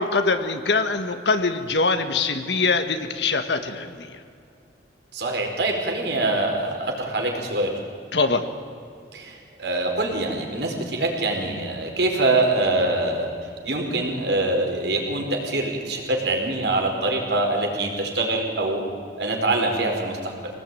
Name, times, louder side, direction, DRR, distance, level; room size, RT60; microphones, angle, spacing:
voice 1, 0.0-4.1 8.1-8.4, left 3 dB, 80° left, 7 dB, 1.5 m, -23 dB
voice 2, 5.1-7.7 9.1-13.3 13.6-18.8 19.2-20.3, right 2 dB, 70° right, 1 dB, 4.8 m, -24 dB
25.0 x 18.5 x 9.2 m, 2.4 s
head